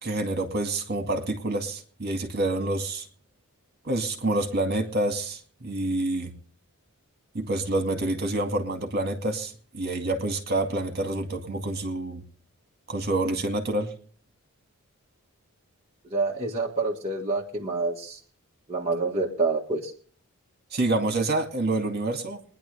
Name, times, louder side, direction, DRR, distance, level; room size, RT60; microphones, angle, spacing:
voice 1, 0.0-3.0 3.8-6.3 7.3-12.2 12.9-13.9 20.7-22.4, right 2 dB, 45° right, 2.2 m, -27 dB
voice 2, 16.1-18.2 18.7-19.9, right 3 dB, 30° right, 1.7 m, -27 dB
23.0 x 10.5 x 3.4 m
head